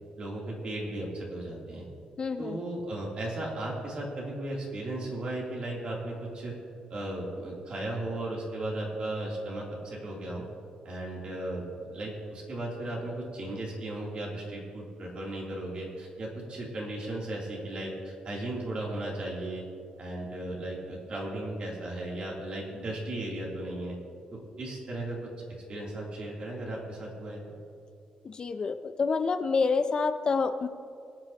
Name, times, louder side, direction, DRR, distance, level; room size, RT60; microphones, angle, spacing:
voice 1, 0.2-1.9 2.4-6.5 6.9-10.4 10.8-19.6 20.0-24.0 24.3-27.4, right 1 dB, 45° right, -3 dB, 3.0 m, -36 dB
voice 2, 2.2-2.6 28.2-30.7, left 4 dB, 35° left, 9 dB, 0.4 m, -28 dB
23.0 x 8.9 x 2.9 m, 2.4 s
cardioid pair, 145°, 3 cm